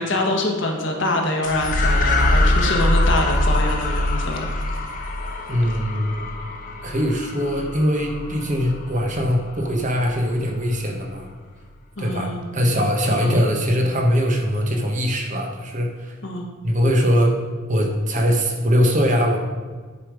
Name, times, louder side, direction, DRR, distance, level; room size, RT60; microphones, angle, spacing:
voice 1, 0.0-4.5 12.0-12.5 13.2-13.4 16.2-16.5, left 1 dB, 60° left, 2 dB, 1.3 m, -25 dB
sound 1, 1.4-10.1, left 1 dB, 40° left, 0.9 m, -23 dB
voice 2, 5.5-6.2 6.8-11.3 12.0-16.1 16.6-17.3 17.7-19.4, equal, 35° right, 1 dB, 1.2 m, -21 dB
9.8 x 5.3 x 5.0 m, 1.4 s
head